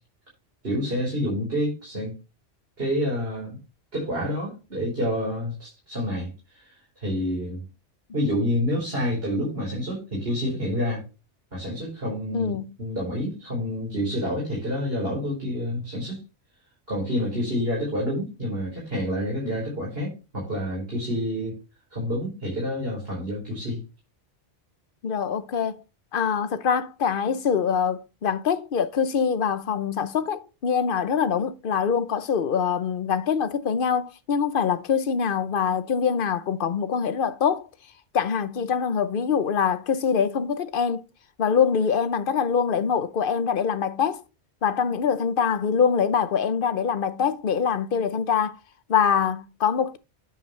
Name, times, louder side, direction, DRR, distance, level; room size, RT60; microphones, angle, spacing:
voice 1, 0.6-2.1 2.8-3.6 3.9-7.6 8.1-11.0 11.5-16.2 16.9-21.6 21.9-23.8, equal, 55° right, 5.0 m, -28 dB
voice 2, 12.3-12.7 25.0-25.8 26.1-37.7 38.1-41.1 41.4-44.2 44.6-48.6 48.9-50.0, left 7 dB, 55° left, 0.9 m, -24 dB
10.0 x 7.3 x 3.2 m
omnidirectional pair, 1.2 m